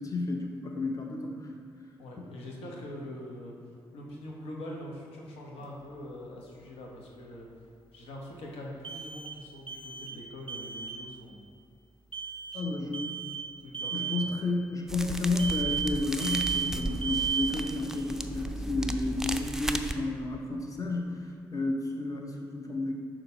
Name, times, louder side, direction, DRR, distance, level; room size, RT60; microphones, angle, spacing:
voice 1, 0.0-1.5 12.5-13.1 13.9-21.2 21.5-22.9, left 2 dB, 35° left, 1 dB, 0.8 m, -31 dB
voice 2, 2.0-3.5 3.9-7.5 7.9-11.5 12.5-12.9 13.6-14.2, left 1 dB, 80° left, -2 dB, 1.0 m, -43 dB
sound 1, 5.6-5.7 8.8-9.4 9.7-10.2 10.5-11.0 12.1-12.6 12.9-13.4 13.7-14.2 15.4-15.9 16.2-16.8 17.0-17.6, right 7 dB, 10° left, 1.5 m, -33 dB
sound 2, 14.9-19.9, right 1 dB, 5° right, 0.4 m, -35 dB
6.6 x 3.0 x 5.4 m, 2.3 s
hypercardioid pair, 45°, 10 cm